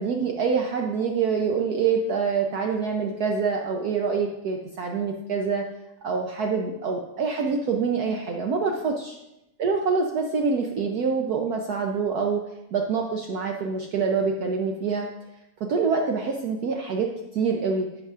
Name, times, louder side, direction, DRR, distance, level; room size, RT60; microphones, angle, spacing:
voice 1, 0.0-5.6 6.0-9.1 9.6-12.4 12.7-15.1 15.6-17.9, right 5 dB, 75° right, 2 dB, 0.8 m, -26 dB
11.0 x 7.9 x 2.4 m, 0.89 s
omnidirectional pair, 2.4 m